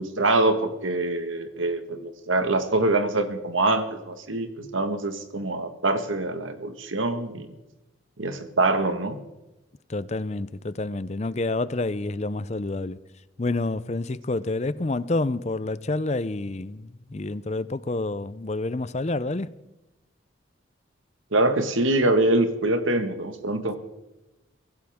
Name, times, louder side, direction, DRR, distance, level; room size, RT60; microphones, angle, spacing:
voice 1, 0.0-7.5 8.2-9.2 21.3-23.8, right 2 dB, 80° right, 1.6 m, -24 dB
voice 2, 9.9-13.0 13.4-19.5, left 2 dB, 35° left, 0.5 m, -28 dB
23.5 x 15.5 x 3.6 m
head